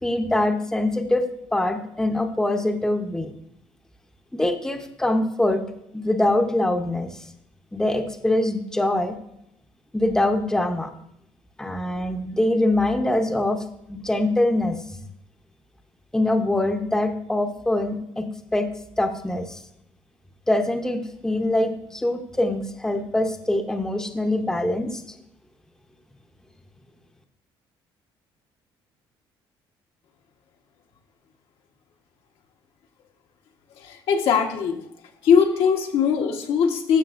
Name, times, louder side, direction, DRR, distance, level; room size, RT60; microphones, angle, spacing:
voice 1, 0.0-1.3 1.5-3.3 4.3-5.6 5.9-7.3 7.7-9.2 9.9-10.9 11.6-14.8 16.1-18.7 19.0-19.6 20.5-25.0, left 1 dB, 5° left, 5 dB, 0.7 m, -23 dB
voice 2, 33.8-34.8 35.2-37.0, left 6 dB, 75° left, 3 dB, 1.1 m, -20 dB
13.5 x 6.1 x 2.5 m, 0.77 s
cardioid pair, 110°, 9 cm